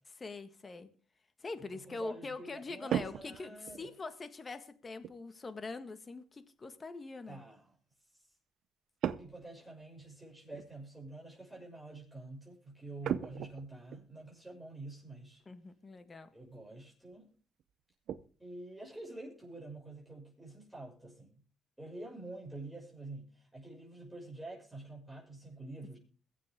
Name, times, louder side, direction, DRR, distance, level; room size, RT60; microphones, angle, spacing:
voice 1, 0.2-0.9 1.4-7.4 15.5-16.3, left 3 dB, 30° left, 10 dB, 1.7 m, -43 dB
voice 2, 1.6-3.9 7.3-7.6 8.1-8.2 9.1-15.4 16.3-17.3 18.4-21.4 21.8-26.0, right 2 dB, 5° right, -4 dB, 6.4 m, -48 dB
sound 1, 2.9-4.0 5.0-5.2 9.0-9.5 9.8-9.9 10.5-10.7 13.0-14.0 15.4-15.5 16.0-16.1 16.5-16.7 17.1-17.2 17.6-18.3, right 9 dB, 75° right, 0.8 m, -37 dB
22.5 x 7.7 x 3.7 m, 0.39 s
cardioid pair, 90°, 0 cm